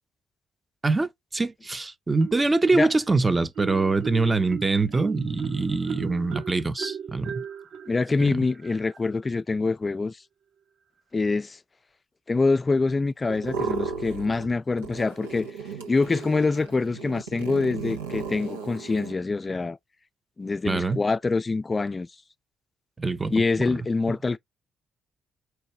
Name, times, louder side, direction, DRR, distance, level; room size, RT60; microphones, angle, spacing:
voice 1, 0.8-7.4 8.2-8.4 20.6-21.0 23.0-23.3 23.7-23.8, right 3 dB, 25° right, 0.8 m, -24 dB
Marimba xylophone, 2.2-3.1 3.5-9.1, right 8 dB, 65° right, 1.3 m, -37 dB
voice 2, 7.9-10.2 11.1-11.6 12.3-15.5 15.9-19.8 20.4-22.1 23.3-24.4, left 3 dB, 30° left, 0.3 m, -25 dB
sound 1, 13.3-14.5 14.8-19.1, right 4 dB, 85° right, 0.8 m, -35 dB
4.6 x 2.6 x 4.4 m
figure-of-eight pair, 40°, 0 cm